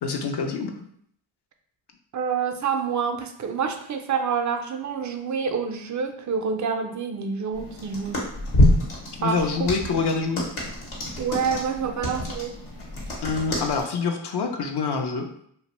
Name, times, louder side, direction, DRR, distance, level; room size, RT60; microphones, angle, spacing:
voice 1, 0.0-0.9 9.2-10.5 13.2-15.3, left 5 dB, 55° left, 4 dB, 0.5 m, -26 dB
voice 2, 2.1-8.3 9.2-9.7 11.2-12.6, right 6 dB, 40° right, 5 dB, 0.4 m, -27 dB
sound 1, 7.5-13.8, left 1 dB, 80° left, 1.0 m, -26 dB
2.5 x 2.1 x 2.9 m, 0.66 s
cardioid pair, 45°, 50 cm